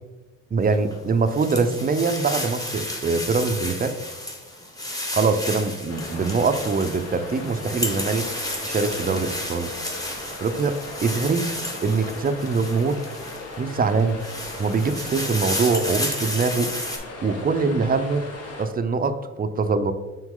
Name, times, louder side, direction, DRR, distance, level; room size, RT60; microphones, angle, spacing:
voice 1, 0.5-3.9 5.1-8.3 8.6-9.7 10.4-11.4 11.8-13.0 13.6-14.2 14.6-16.7 17.2-18.3 18.6-19.9, right 4 dB, 30° right, 9 dB, 0.5 m, -23 dB
sound 1, 0.7-13.5 14.0-17.0, left 1 dB, 10° left, 1.2 m, -32 dB
sound 2, 5.9-18.7, left 2 dB, 55° left, 1.4 m, -38 dB
6.1 x 4.5 x 3.7 m, 1.1 s
cardioid pair, 90°, 30 cm